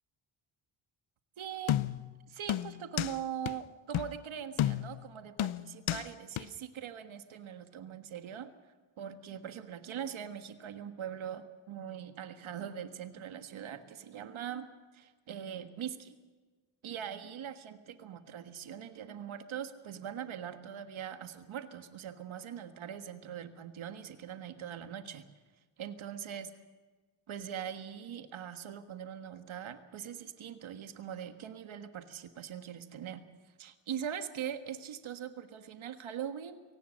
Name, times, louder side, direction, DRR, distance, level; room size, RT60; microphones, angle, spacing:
voice 1, 1.4-1.8 2.3-8.5 9.0-14.7 14.9-16.1 16.8-25.3 25.8-26.5 27.3-33.2 33.6-36.6, right 9 dB, 80° right, 8 dB, 1.6 m, -42 dB
sound 1, 1.7-2.1 2.5-3.2 3.5-3.6 3.9-4.1 4.6-5.0 5.4-6.1 6.4-6.5, left 12 dB, 85° left, 0.8 m, -32 dB
24.0 x 18.0 x 6.4 m, 1.3 s
cardioid pair, 90°, 47 cm